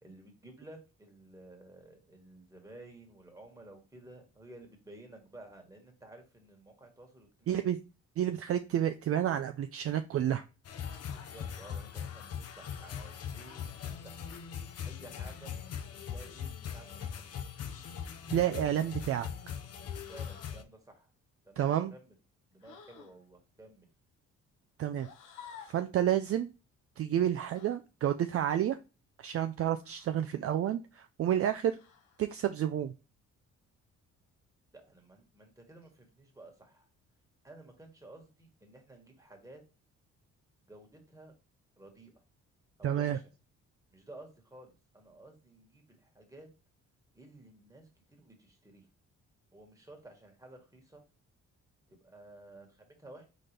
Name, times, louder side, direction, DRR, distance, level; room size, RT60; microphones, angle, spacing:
voice 1, 0.0-7.6 11.1-15.5 16.1-17.6 18.3-18.7 20.1-21.1 21.4-22.1 22.5-23.9 34.7-36.9 37.4-39.6 40.7-41.3 41.8-42.1 42.8-43.2 43.9-46.5 47.1-48.9 49.5-51.0 51.9-53.3, right 2 dB, 10° right, 2 dB, 1.7 m, -54 dB
voice 2, 7.5-7.8 8.2-10.4 18.3-19.5 21.6-21.9 24.8-25.1 25.7-26.5 27.0-28.8 29.2-31.8 32.2-32.9 42.8-43.2, right 10 dB, 50° right, 8 dB, 0.4 m, -30 dB
sound 1, 10.6-20.6, left 8 dB, 55° left, 0.7 m, -41 dB
sound 2, 17.6-18.0 20.0-20.6 22.6-23.2 24.9-25.9 27.5-27.7 29.8-30.3 31.7-32.2, left 7 dB, 90° left, 1.0 m, -53 dB
4.2 x 3.9 x 3.3 m, 0.30 s
cardioid pair, 90°, 30 cm